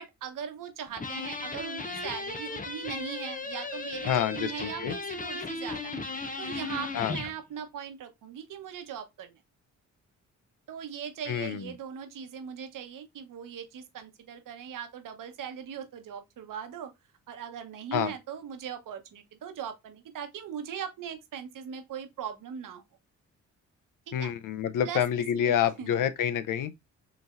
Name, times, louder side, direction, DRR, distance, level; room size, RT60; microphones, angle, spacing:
voice 1, 0.0-6.0 6.4-9.4 10.7-16.9 17.3-22.8 24.1-24.3 24.8-26.0, right 8 dB, 75° right, 1.1 m, -40 dB
sound 1, 1.0-7.3, left 3 dB, 25° left, 0.9 m, -36 dB
voice 2, 4.1-4.9 6.9-7.2 11.3-11.7 17.9-18.1 24.1-26.7, left 9 dB, 70° left, 0.7 m, -28 dB
5.3 x 3.2 x 2.5 m
supercardioid pair, 60°, 33 cm